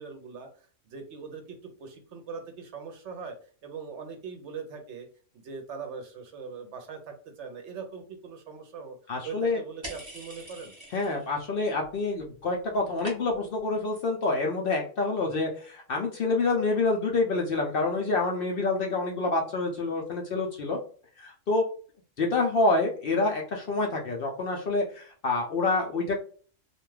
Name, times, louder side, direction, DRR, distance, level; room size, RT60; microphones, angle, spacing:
voice 1, 0.0-3.3 3.6-5.1 5.3-9.0 9.2-10.7 15.2-15.3, right 5 dB, 65° right, 5 dB, 0.8 m, -41 dB
voice 2, 9.1-9.6 10.9-20.8 21.2-21.6 22.2-26.2, left 3 dB, 60° left, 1 dB, 0.6 m, -27 dB
sound 1, 9.8-11.4 11.7-12.3 12.5-13.6, right 1 dB, 25° right, 0.8 m, -44 dB
2.5 x 2.2 x 3.1 m, 0.42 s
omnidirectional pair, 1.4 m